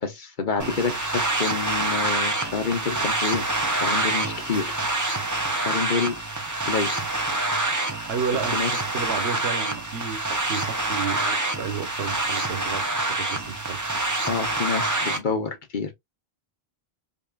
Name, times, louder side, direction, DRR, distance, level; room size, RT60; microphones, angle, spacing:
voice 1, 0.0-5.3 5.5-6.2 6.7-7.0 8.5-8.7 14.2-15.9, left 5 dB, 50° left, 1.0 m, -28 dB
sound 1, 0.6-15.2, right 2 dB, 20° right, 0.8 m, -26 dB
voice 2, 8.1-13.9, right 6 dB, 85° right, 1.2 m, -32 dB
5.3 x 2.6 x 2.4 m
omnidirectional pair, 1.0 m